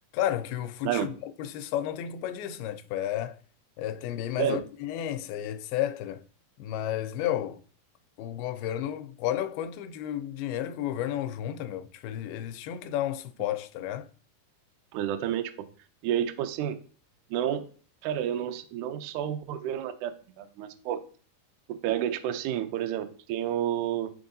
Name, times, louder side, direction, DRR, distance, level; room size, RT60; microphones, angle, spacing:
voice 1, 0.1-3.4 3.8-6.2 6.6-7.6 8.2-14.1, left 11 dB, 90° left, 2.4 m, -32 dB
voice 2, 14.9-15.7 16.0-16.8 17.3-17.7 18.0-21.0 21.7-24.1, right 10 dB, 85° right, 1.7 m, -30 dB
10.5 x 3.6 x 2.7 m
omnidirectional pair, 4.2 m